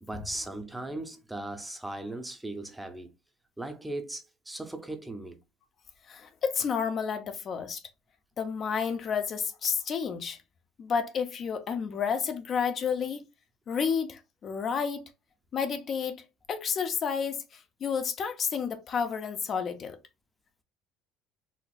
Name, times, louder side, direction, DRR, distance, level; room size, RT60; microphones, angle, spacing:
voice 1, 0.0-3.1 3.6-5.4, right 2 dB, 5° right, 0.5 m, -38 dB
voice 2, 6.1-7.8 8.4-10.4 10.8-13.3 13.7-15.1 15.5-20.0, left 6 dB, 40° left, 0.4 m, -31 dB
4.2 x 2.4 x 2.3 m
cardioid pair, 115°, 0 cm